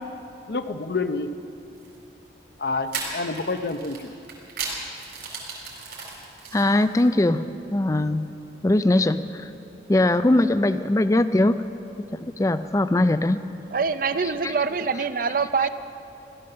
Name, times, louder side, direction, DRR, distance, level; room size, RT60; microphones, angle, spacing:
voice 1, 0.5-1.3 2.6-4.1, left 3 dB, 65° left, 10 dB, 0.7 m, -28 dB
sound 1, 1.8-2.0 2.9-7.2, right 5 dB, 65° right, 4.2 m, -36 dB
voice 2, 6.5-7.4 7.7-8.2 8.6-9.4 9.9-11.6 12.1-13.4, left 1 dB, 20° left, 12 dB, 0.4 m, -20 dB
voice 3, 13.7-15.7, right 5 dB, 50° right, 12 dB, 0.5 m, -24 dB
16.5 x 12.0 x 6.7 m, 2.8 s
head